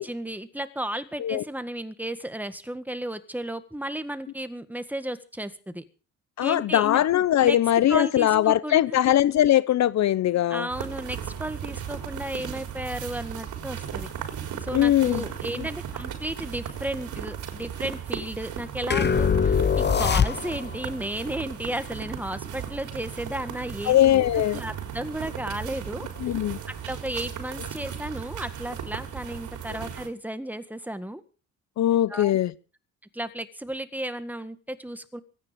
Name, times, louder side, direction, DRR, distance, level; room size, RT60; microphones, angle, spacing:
voice 1, 0.0-5.8 6.4-7.0 7.4-7.6 7.9-8.8 10.5-14.1 14.6-24.0 24.3-26.1 26.8-31.2 31.9-32.3 33.1-35.2, right 1 dB, 5° right, 1.8 m, -34 dB
voice 2, 6.4-10.7 14.7-15.2 23.9-24.6 26.2-26.6 31.8-32.5, left 12 dB, 65° left, 0.8 m, -21 dB
sound 1, 10.7-30.1, right 8 dB, 75° right, 4.3 m, -36 dB
sound 2, 18.9-20.8, left 6 dB, 35° left, 1.1 m, -22 dB
24.0 x 9.8 x 5.3 m
cardioid pair, 90°, 30 cm